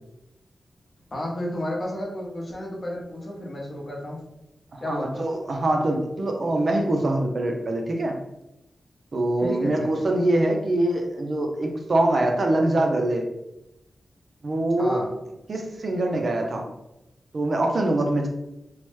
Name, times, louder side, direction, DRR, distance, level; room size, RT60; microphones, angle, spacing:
voice 1, 1.1-4.2 4.8-5.3 9.4-10.0 14.8-15.1, left 1 dB, 40° left, -2 dB, 0.7 m, -32 dB
voice 2, 4.7-8.2 9.1-13.3 14.4-15.0 15.5-16.7 17.3-18.3, right 1 dB, 50° right, 2 dB, 0.4 m, -24 dB
3.0 x 2.1 x 3.1 m, 0.92 s
wide cardioid pair, 115°, 0 cm